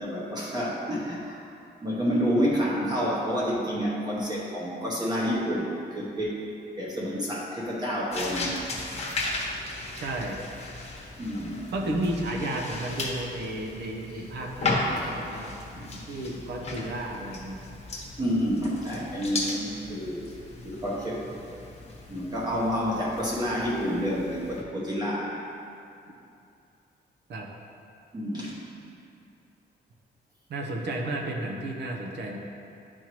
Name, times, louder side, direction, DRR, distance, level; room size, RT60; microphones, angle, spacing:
voice 1, 0.0-1.4 1.8-6.4 6.8-8.6 11.2-11.7 14.1-14.2 15.0-15.1 15.8-15.9 18.2-20.3 20.6-21.3 22.1-25.4 28.1-28.6, equal, 20° right, -5 dB, 0.9 m, -29 dB
sound 1, 8.1-24.6, left 2 dB, 35° left, 1.0 m, -36 dB
voice 2, 10.0-10.5 11.7-15.5 15.9-17.6 27.3-27.5 30.5-32.4, right 1 dB, 75° right, 1 dB, 0.9 m, -32 dB
10.5 x 4.5 x 3.0 m, 2.5 s
wide cardioid pair, 160°, 18 cm